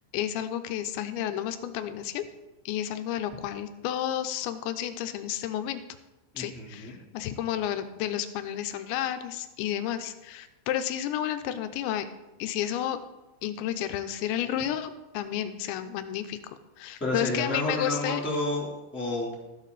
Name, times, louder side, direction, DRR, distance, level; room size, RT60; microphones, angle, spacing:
voice 1, 0.1-2.2 2.7-5.8 6.4-12.1 12.4-13.0 13.4-16.4 16.8-18.2, left 11 dB, 85° left, 9 dB, 2.6 m, -31 dB
voice 2, 6.3-7.0 17.0-19.3, left 2 dB, 5° left, -4 dB, 2.1 m, -30 dB
13.5 x 9.4 x 4.1 m, 1.0 s
omnidirectional pair, 5.8 m